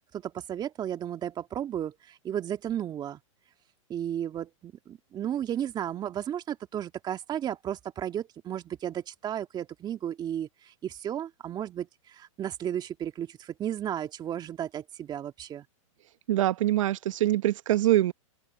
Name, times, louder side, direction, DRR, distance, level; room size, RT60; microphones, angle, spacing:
voice 1, 0.1-3.2 3.9-15.7, right 10 dB, 25° right, 1.9 m, -34 dB
voice 2, 16.3-18.1, right 14 dB, 70° right, 1.1 m, -24 dB
open air
hypercardioid pair, 125°, 17 cm